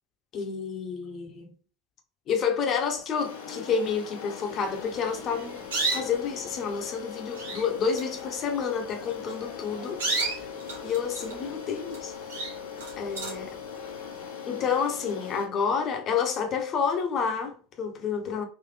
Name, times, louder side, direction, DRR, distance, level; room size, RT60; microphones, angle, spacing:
voice 1, 0.3-1.5 2.3-5.6 5.9-10.5 10.8-12.1 13.0-13.6 14.4-18.4, left 6 dB, 45° left, 1.0 m, -29 dB
sound 1, 3.2-15.5, left 7 dB, 75° left, 0.9 m, -40 dB
sound 2, 5.2-6.3 7.0-7.1 7.3-7.7 7.9-8.2 9.1-9.3 9.8-11.5 11.9-12.0 12.3-13.5, right 3 dB, 75° right, 1.2 m, -31 dB
4.1 x 2.5 x 3.3 m
hypercardioid pair, 75°, 0 cm